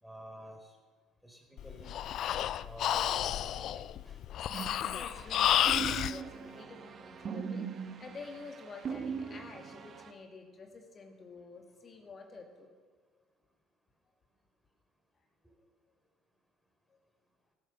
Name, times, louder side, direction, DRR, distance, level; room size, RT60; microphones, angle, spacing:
voice 1, 0.0-0.7 1.2-1.9 2.6-4.3 5.2-5.4, equal, ahead, 1 dB, 4.3 m, -50 dB
Breathing, 1.6-6.2, left 11 dB, 55° left, 0.4 m, -31 dB
sound 1, 4.5-10.1, right 6 dB, 45° right, 1.3 m, -41 dB
voice 2, 4.9-12.7 16.9-17.0, left 4 dB, 40° left, 3 dB, 2.5 m, -49 dB
16.5 x 9.7 x 6.6 m, 1.4 s
hypercardioid pair, 65°, 0 cm